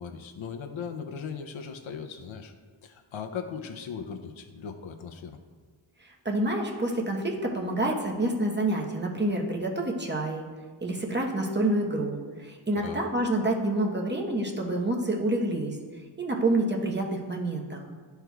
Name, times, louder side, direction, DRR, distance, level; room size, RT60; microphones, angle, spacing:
voice 1, 0.0-2.5 2.8-5.4 12.7-13.0, left 6 dB, 80° left, 5 dB, 0.6 m, -38 dB
voice 2, 6.0-10.4 10.8-15.8 16.2-17.8, right 1 dB, 25° right, 0 dB, 1.0 m, -28 dB
12.0 x 4.5 x 2.3 m, 1.5 s
wide cardioid pair, 95°, 47 cm